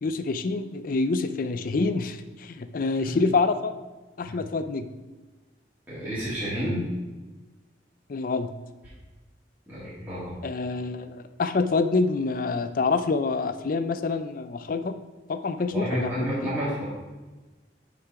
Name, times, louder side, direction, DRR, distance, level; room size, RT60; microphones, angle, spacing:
voice 1, 0.0-3.7 4.2-4.9 8.1-8.5 10.4-15.0 15.3-16.6, left 3 dB, 50° left, 11 dB, 0.4 m, -26 dB
voice 2, 5.9-6.8 9.7-10.3 15.7-16.8, equal, 10° right, -11 dB, 2.1 m, -30 dB
5.9 x 5.8 x 4.7 m, 1.2 s
head